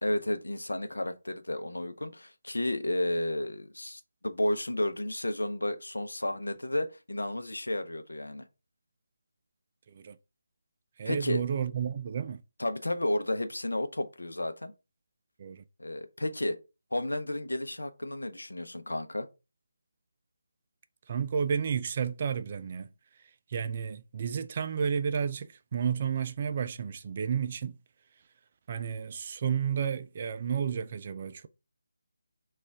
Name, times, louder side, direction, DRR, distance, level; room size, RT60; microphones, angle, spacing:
voice 1, 0.0-8.5 11.0-11.4 12.6-14.7 15.8-16.6 16.9-19.3, left 1 dB, 70° left, 0.7 m, -32 dB
voice 2, 11.0-12.4 15.4-15.6 21.1-22.9 23.5-27.8 28.7-31.5, right 7 dB, 35° right, 0.3 m, -31 dB
6.0 x 2.4 x 3.4 m
figure-of-eight pair, 155°, 0 cm